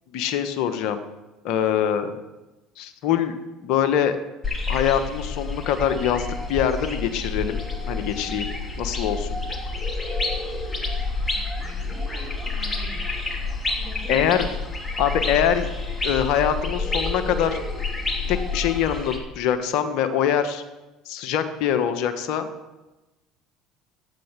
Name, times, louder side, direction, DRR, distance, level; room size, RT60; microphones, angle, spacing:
voice 1, 0.1-1.0 1.4-2.1 2.8-3.3 3.6-4.2 4.7-8.5 8.8-9.4 14.1-14.5 15.0-15.7 16.0-17.6 18.3-20.6 21.1-22.5, left 9 dB, 65° left, 9 dB, 1.4 m, -24 dB
sound 1, 4.4-19.2, left 3 dB, 15° left, 3.4 m, -29 dB
voice 2, 11.3-13.0 13.8-15.3, right 2 dB, 65° right, -1 dB, 5.5 m, -45 dB
13.0 x 9.3 x 7.5 m, 1.1 s
hypercardioid pair, 70°, 0 cm